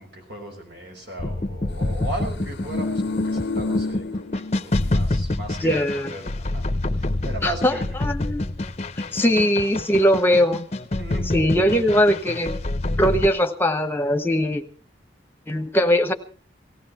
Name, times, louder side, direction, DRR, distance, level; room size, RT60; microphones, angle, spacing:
voice 1, 0.0-6.6 7.0-7.9 11.0-11.6, right 2 dB, 65° right, 2 dB, 6.2 m, -36 dB
sound 1, 1.2-13.3, left 2 dB, 35° left, 0.8 m, -27 dB
sound 2, 2.4-5.0 5.3-5.4, left 3 dB, 70° left, 0.7 m, -29 dB
voice 2, 5.6-6.1 7.4-7.7 8.0-8.4 9.1-10.6 11.3-12.5 13.0-14.6 15.5-16.1, equal, 10° left, 7 dB, 1.2 m, -20 dB
18.5 x 16.5 x 4.4 m, 0.38 s
head